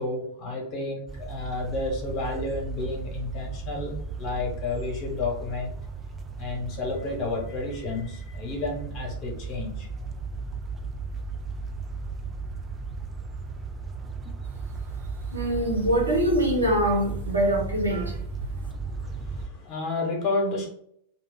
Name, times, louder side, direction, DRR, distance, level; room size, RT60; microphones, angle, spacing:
voice 1, 0.0-5.7 6.4-9.9 14.2-14.3 18.5-20.7, left 3 dB, 40° left, 0 dB, 1.0 m, -31 dB
sound 1, 1.1-19.5, right 4 dB, 15° right, 0.3 m, -35 dB
voice 2, 15.3-18.3, right 1 dB, 80° right, 0 dB, 0.8 m, -24 dB
2.3 x 2.2 x 3.8 m, 0.68 s
figure-of-eight pair, 90°, 0 cm